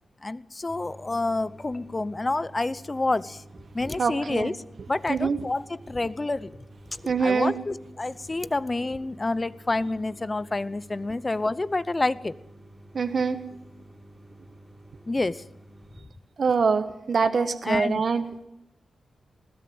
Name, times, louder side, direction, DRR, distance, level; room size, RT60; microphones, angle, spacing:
voice 1, 0.2-3.4 3.7-4.5 4.9-6.6 6.9-12.3 15.1-15.4 17.6-18.0, left 2 dB, 20° left, 18 dB, 0.7 m, -28 dB
sound 1, 0.7-16.0, right 1 dB, 5° right, 3.5 m, -50 dB
voice 2, 4.0-4.5 5.1-5.5 7.0-7.5 12.9-13.4 16.4-18.3, right 5 dB, 45° right, 9 dB, 1.2 m, -24 dB
20.5 x 17.0 x 7.8 m, 0.85 s
wide cardioid pair, 165°, 0 cm